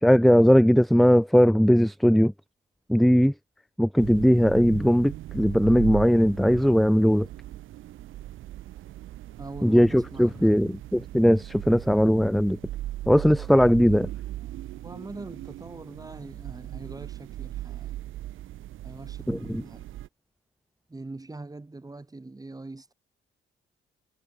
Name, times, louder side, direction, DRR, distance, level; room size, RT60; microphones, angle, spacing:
voice 1, 0.0-2.3 2.9-3.3 3.8-7.3 9.6-12.6 13.1-14.1 19.3-19.4, equal, ahead, 0.8 m, -19 dB
sound 1, 4.0-20.1, right 14 dB, 85° right, 4.9 m, -39 dB
voice 2, 9.4-10.5 14.8-17.9 18.8-19.9 20.9-22.9, right 2 dB, 20° right, 6.6 m, -42 dB
cardioid pair, 90°, 20 cm